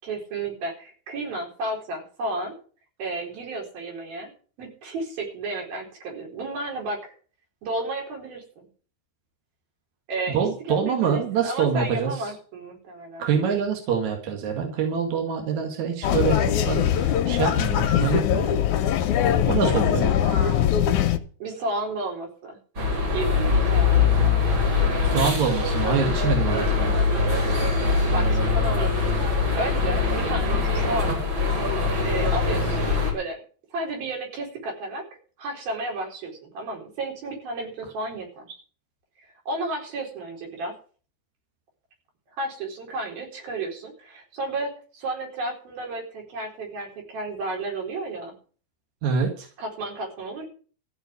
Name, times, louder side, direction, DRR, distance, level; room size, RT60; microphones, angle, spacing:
voice 1, 0.0-2.5 3.0-4.3 4.6-7.1 7.6-8.7 10.1-10.4 10.7-13.3 19.6-20.8 21.4-22.6 23.1-24.3 26.9-27.3 28.1-29.2 29.6-31.3 32.0-33.4 33.7-35.0 35.4-38.6 39.5-40.7 42.4-48.4 49.6-50.5, right 2 dB, 70° right, 1 dB, 6.1 m, -32 dB
voice 2, 10.3-12.3 13.2-18.5 19.5-20.1 25.0-27.0 49.0-49.5, right 6 dB, 50° right, 2 dB, 3.2 m, -25 dB
sound 1, 16.0-21.2, left 10 dB, 75° left, 1.8 m, -22 dB
sound 2, 22.8-33.1, left 4 dB, 30° right, 5.0 m, -22 dB
14.5 x 5.9 x 9.6 m, 0.40 s
omnidirectional pair, 4.5 m